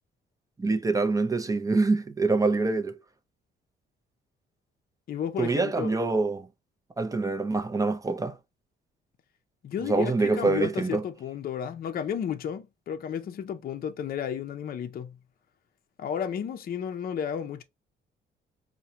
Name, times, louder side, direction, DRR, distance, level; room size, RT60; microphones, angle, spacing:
voice 1, 0.6-2.9 5.4-6.5 7.0-8.4 9.8-11.0, right 3 dB, 15° right, 0.5 m, -25 dB
voice 2, 5.1-5.9 9.6-15.2 16.0-17.6, left 8 dB, 50° left, 0.5 m, -33 dB
4.6 x 2.1 x 2.7 m
cardioid pair, 90°, 20 cm